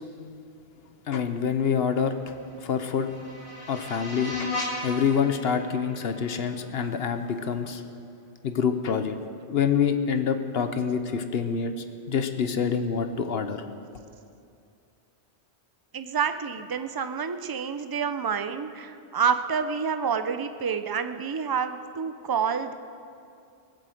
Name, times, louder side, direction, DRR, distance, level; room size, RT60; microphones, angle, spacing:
voice 1, 1.1-2.3 2.6-3.1 3.7-7.8 8.4-9.2 9.4-11.7 12.1-13.6, left 7 dB, 65° left, 8 dB, 1.0 m, -26 dB
sound 1, 2.3-7.3, left 2 dB, 50° left, 2.2 m, -37 dB
voice 2, 15.9-22.7, right 6 dB, 30° right, 9 dB, 0.4 m, -28 dB
20.5 x 7.7 x 7.7 m, 2.5 s
omnidirectional pair, 1.1 m